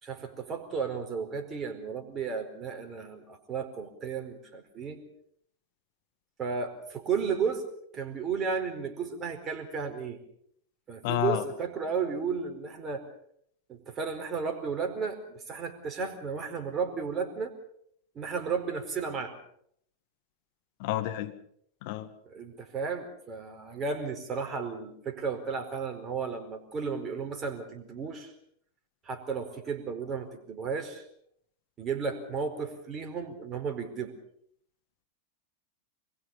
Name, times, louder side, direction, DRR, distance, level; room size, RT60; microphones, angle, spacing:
voice 1, 0.0-5.0 6.4-7.6 7.9-10.2 10.9-13.0 13.7-17.5 18.1-19.3 22.2-28.3 29.0-31.0 31.8-34.1, right 5 dB, 25° right, 6 dB, 4.7 m, -33 dB
voice 2, 11.0-11.4 20.8-21.3 21.8-22.1, left 13 dB, 50° left, 8 dB, 2.0 m, -29 dB
25.5 x 22.0 x 5.5 m, 0.67 s
figure-of-eight pair, 90°, 0 cm